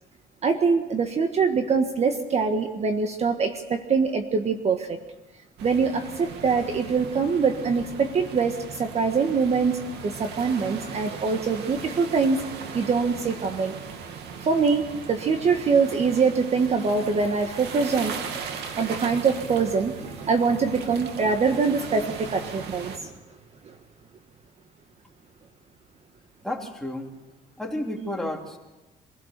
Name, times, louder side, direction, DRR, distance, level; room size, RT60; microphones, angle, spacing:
voice 1, 0.4-5.0 5.6-12.4 12.7-13.7 14.4-18.1 18.7-23.1, right 5 dB, 40° right, 6 dB, 1.6 m, -24 dB
sound 1, 5.6-23.0, right 6 dB, 80° right, 2.4 m, -38 dB
voice 2, 26.4-27.1 27.6-28.6, left 1 dB, ahead, 0 dB, 3.3 m, -31 dB
26.0 x 16.5 x 6.8 m, 1.1 s
cardioid pair, 110°, 17 cm